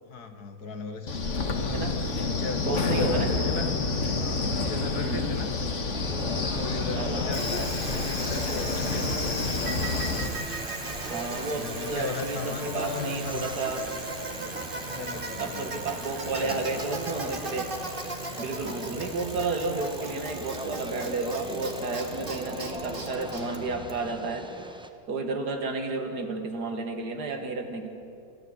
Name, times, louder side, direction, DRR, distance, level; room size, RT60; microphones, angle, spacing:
voice 1, 0.1-2.0 2.3-3.8 4.2-5.5 6.1-9.3 11.3-13.5 14.8-15.8 16.2-16.9 18.5-19.0, left 4 dB, 75° left, 8 dB, 1.9 m, -37 dB
Wind, 1.1-10.3, left 3 dB, 50° left, 1.8 m, -28 dB
voice 2, 2.6-3.4 5.0-5.3 7.0-7.3 11.1-13.8 15.0-17.7 18.3-24.5 25.1-27.9, right 3 dB, 80° right, 5 dB, 2.4 m, -32 dB
sound 1, 5.9-24.9, right 1 dB, 5° right, 0.7 m, -40 dB
Bicycle, 7.3-24.4, right 3 dB, 35° right, 2.0 m, -38 dB
27.0 x 13.5 x 8.0 m, 2.5 s
omnidirectional pair, 1.7 m